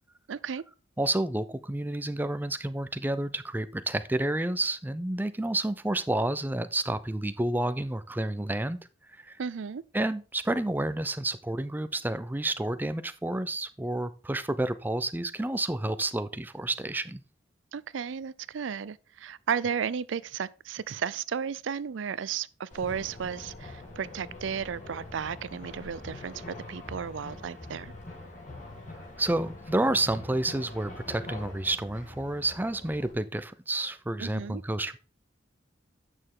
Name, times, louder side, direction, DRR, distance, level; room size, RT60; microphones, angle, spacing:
voice 1, 0.3-0.6 9.4-9.8 17.7-27.9 34.2-34.6, right 7 dB, 75° right, 0.4 m, -34 dB
voice 2, 1.0-8.8 9.2-9.4 9.9-17.2 29.2-35.0, right 1 dB, 10° right, 0.5 m, -30 dB
sound 1, 22.7-33.1, left 2 dB, 40° left, 2.1 m, -44 dB
8.9 x 6.4 x 3.7 m
head